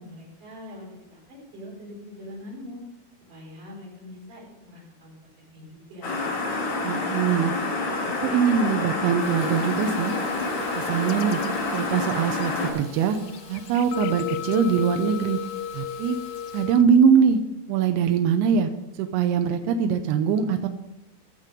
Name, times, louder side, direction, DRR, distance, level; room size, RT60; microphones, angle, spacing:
voice 1, 0.0-2.8 3.3-6.1, left 1 dB, 50° right, -4 dB, 6.2 m, -43 dB
sound 1, 6.0-12.7, left 3 dB, 70° left, 4.8 m, -28 dB
voice 2, 6.8-7.5 8.2-10.1 10.7-11.4 11.7-13.2 13.5-15.4 15.7-16.2 16.5-17.4 17.7-18.7 19.0-20.7, right 7 dB, 85° right, 6 dB, 2.7 m, -22 dB
Fill (with liquid), 9.2-16.7, left 2 dB, 30° left, 3.7 m, -47 dB
sound 2, 9.8-16.8, left 10 dB, 85° left, 2.0 m, -36 dB
15.0 x 7.5 x 5.1 m, 0.92 s
omnidirectional pair, 4.7 m